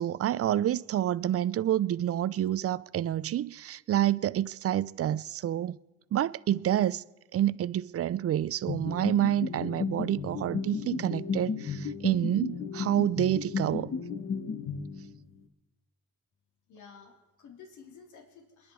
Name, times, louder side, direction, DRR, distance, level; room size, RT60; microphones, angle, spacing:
voice 1, 0.0-5.8 6.1-7.0 7.3-13.9, right 11 dB, 50° right, 0.6 m, -28 dB
sound 1, 8.7-15.4, left 5 dB, 45° left, 1.4 m, -34 dB
voice 2, 16.7-18.7, left 6 dB, 75° left, 3.6 m, -52 dB
27.5 x 10.5 x 4.6 m
cardioid pair, 90°, 30 cm